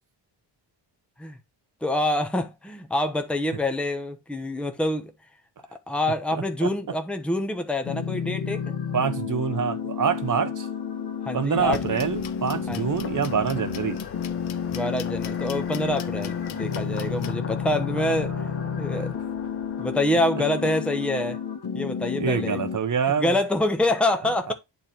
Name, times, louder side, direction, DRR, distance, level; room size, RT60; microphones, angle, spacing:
voice 1, 1.8-5.1 5.9-8.7 11.2-11.9 12.7-12.9 14.7-18.5 18.8-19.1 19.8-21.4 21.7-22.6 23.2-24.5, left 1 dB, ahead, 0.9 m, -26 dB
voice 2, 6.3-6.7 8.9-10.7 11.3-14.0 18.0-18.4 18.7-19.0 22.2-23.4, right 7 dB, 45° right, 1.0 m, -26 dB
sound 1, 7.8-22.8, left 7 dB, 60° left, 1.5 m, -31 dB
sound 2, 10.6-21.3, left 6 dB, 30° left, 0.7 m, -43 dB
sound 3, 11.6-17.4, left 10 dB, 85° left, 0.8 m, -42 dB
8.9 x 3.4 x 4.4 m
cardioid pair, 95°, 45 cm